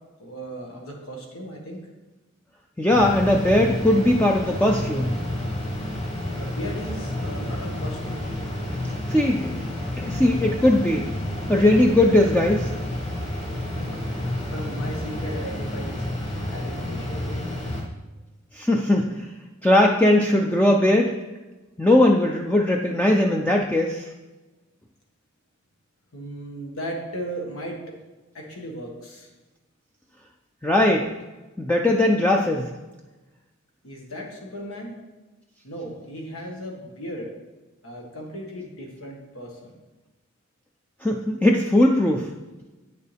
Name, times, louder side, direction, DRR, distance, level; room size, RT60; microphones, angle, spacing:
voice 1, 0.2-1.9 6.4-8.3 13.7-16.1 16.5-17.5 26.1-27.8 28.3-29.3 33.8-35.0 35.6-37.4 37.8-39.7, equal, 85° left, 0 dB, 1.7 m, -36 dB
voice 2, 2.8-5.1 8.9-9.5 10.0-11.2 11.5-12.8 18.5-19.3 19.6-21.2 21.8-24.1 30.6-31.1 31.6-32.7 41.0-42.3, left 1 dB, 5° left, 1 dB, 0.4 m, -19 dB
sound 1, 2.9-17.8, left 1 dB, 30° left, 2.0 m, -30 dB
8.8 x 6.7 x 3.4 m, 1.1 s
head